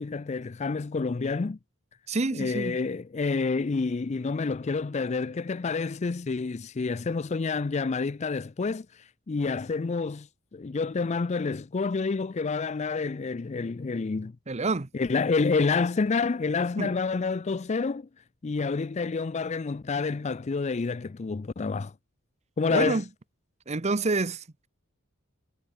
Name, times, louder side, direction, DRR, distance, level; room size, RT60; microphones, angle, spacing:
voice 1, 0.0-1.6 2.3-10.3 10.5-14.3 14.9-18.1 18.4-21.9 22.6-23.0, left 4 dB, 30° left, 0.4 m, -28 dB
voice 2, 2.1-2.8 14.5-14.9 16.8-16.9 22.7-23.0 23.7-24.7, right 3 dB, 30° right, 0.8 m, -28 dB
head